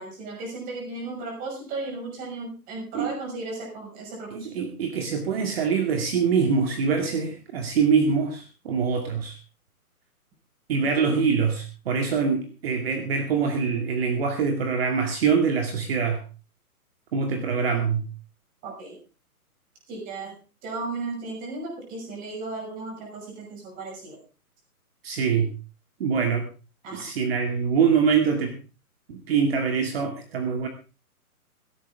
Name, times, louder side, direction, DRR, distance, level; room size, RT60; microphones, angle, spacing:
voice 1, 0.0-4.6 10.8-11.1 18.6-19.0 19.9-20.4 20.6-24.2 26.8-27.1, right 3 dB, 20° right, 0 dB, 6.0 m, -35 dB
voice 2, 4.3-9.4 10.7-16.2 17.1-18.0 25.0-25.5 26.0-26.5 26.9-28.6 29.1-30.7, right 6 dB, 40° right, 4 dB, 2.3 m, -24 dB
16.5 x 15.5 x 3.7 m, 0.34 s
hypercardioid pair, 155°, 45 cm